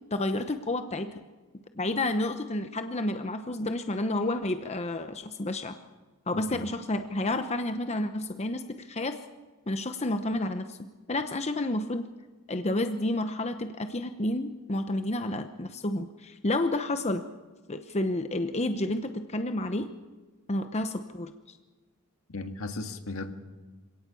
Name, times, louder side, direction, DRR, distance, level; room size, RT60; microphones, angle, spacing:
voice 1, 0.1-1.2 1.7-5.8 6.3-9.2 9.7-12.1 12.5-17.2 17.7-19.9 20.5-21.6, left 1 dB, 30° left, 8 dB, 0.9 m, -30 dB
voice 2, 6.3-6.7 22.3-23.3, left 2 dB, 70° left, 7 dB, 1.8 m, -36 dB
26.5 x 17.5 x 7.0 m, 1.3 s
head